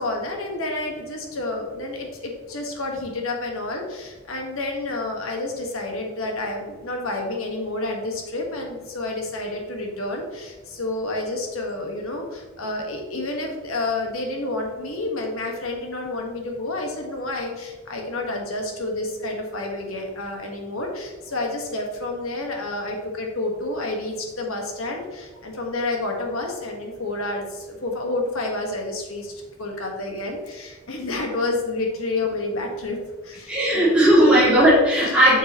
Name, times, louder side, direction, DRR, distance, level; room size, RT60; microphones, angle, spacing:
voice 1, 0.0-29.3 29.6-33.0 33.2-33.9 34.2-34.7 35.0-35.1, left 2 dB, 70° left, 1 dB, 1.5 m, -29 dB
voice 2, 33.5-35.4, right 1 dB, 5° right, -9 dB, 2.4 m, -16 dB
7.4 x 6.7 x 3.0 m, 1.3 s
head